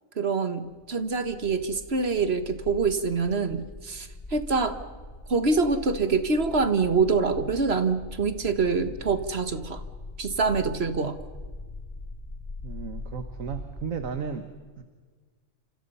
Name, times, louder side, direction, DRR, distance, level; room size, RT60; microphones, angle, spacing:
voice 1, 0.1-4.8 5.3-9.8 10.2-11.2, right 4 dB, 50° right, 10 dB, 1.7 m, -25 dB
sound 1, 0.8-14.1, left 2 dB, 30° left, 3.4 m, -42 dB
voice 2, 12.6-14.5 14.8-14.9, right 6 dB, 75° right, 8 dB, 1.8 m, -34 dB
29.0 x 27.0 x 5.6 m, 1.4 s
omnidirectional pair, 1.4 m